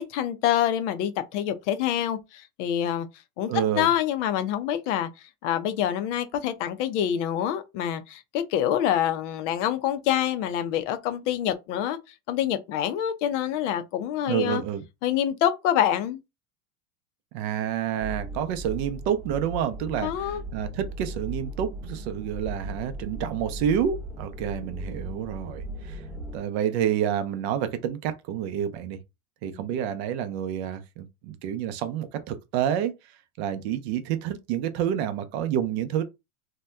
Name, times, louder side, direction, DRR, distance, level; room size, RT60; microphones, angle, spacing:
voice 1, 0.0-3.1 3.4-5.1 5.4-12.0 12.3-14.6 15.0-16.2 20.0-20.4, left 10 dB, 55° left, 0.5 m, -26 dB
voice 2, 3.5-3.9 14.3-14.8 17.3-26.0 26.3-29.0 29.4-36.0, right 9 dB, 50° right, 0.5 m, -29 dB
sound 1, 18.0-26.4, right 1 dB, 5° right, 0.9 m, -37 dB
2.7 x 2.2 x 3.3 m
supercardioid pair, 140°, 43 cm